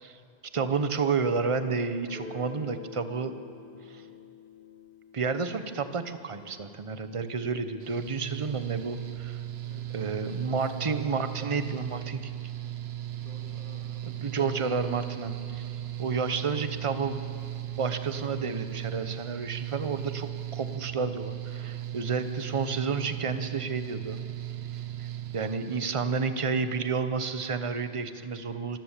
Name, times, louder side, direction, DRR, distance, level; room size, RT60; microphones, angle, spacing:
voice 1, 0.5-3.3 3.9-4.0 5.1-9.4 9.9-12.3 14.0-15.7 16.0-17.2 17.8-24.2 25.3-28.8, right 5 dB, 35° right, 10 dB, 0.9 m, -30 dB
Guitar, 2.0-7.5, left 4 dB, 60° left, 2.0 m, -48 dB
Mechanical fan, 7.8-26.3, right 12 dB, 85° right, 1.1 m, -37 dB
voice 2, 9.6-11.2 13.1-14.4, left 1 dB, 40° left, -4 dB, 2.4 m, -51 dB
24.5 x 15.0 x 7.4 m, 2.5 s
omnidirectional pair, 1.0 m